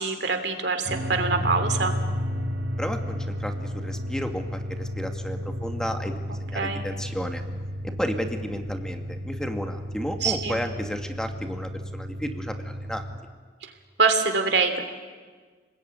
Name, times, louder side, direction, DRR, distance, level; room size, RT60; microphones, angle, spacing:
voice 1, 0.0-1.9 6.5-6.8 10.2-10.6 13.6-13.7 14.0-14.8, right 4 dB, 65° right, 6 dB, 3.0 m, -24 dB
sound 1, 0.9-13.2, equal, 80° right, 4.2 m, -32 dB
voice 2, 2.8-7.4 7.8-13.0, equal, 5° left, 5 dB, 2.1 m, -32 dB
29.5 x 20.5 x 9.5 m, 1.5 s
head